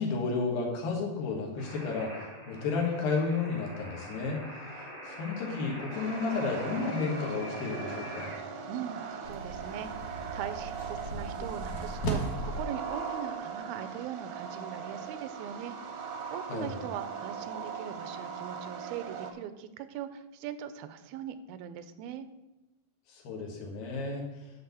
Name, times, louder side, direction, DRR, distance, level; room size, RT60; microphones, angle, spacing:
voice 1, 0.0-8.3 16.5-16.8 23.1-24.4, left 4 dB, 80° left, 0 dB, 3.4 m, -32 dB
sound 1, 1.6-8.4, equal, 20° left, 0.8 m, -45 dB
sound 2, 5.9-19.3, right 6 dB, 70° right, 1.7 m, -39 dB
voice 2, 8.7-22.3, right 9 dB, 85° right, 12 dB, 2.5 m, -41 dB
sound 3, 9.2-12.6, right 1 dB, 60° left, 2.4 m, -36 dB
10.0 x 4.1 x 7.0 m, 1.0 s
omnidirectional pair, 4.1 m